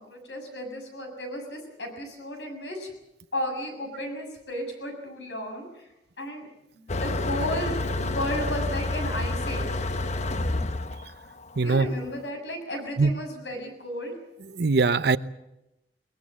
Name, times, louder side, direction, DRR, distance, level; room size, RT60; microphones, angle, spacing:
voice 1, 0.0-2.9 3.3-5.9 6.2-6.5 6.7-9.8 11.6-14.1, left 1 dB, 85° left, 6.8 m, -34 dB
Motor vehicle (road), 6.9-12.0, left 2 dB, 40° left, 0.9 m, -29 dB
voice 2, 11.6-11.9 13.0-13.1 14.5-15.2, right 4 dB, 65° right, 0.8 m, -21 dB
22.0 x 20.5 x 7.4 m
head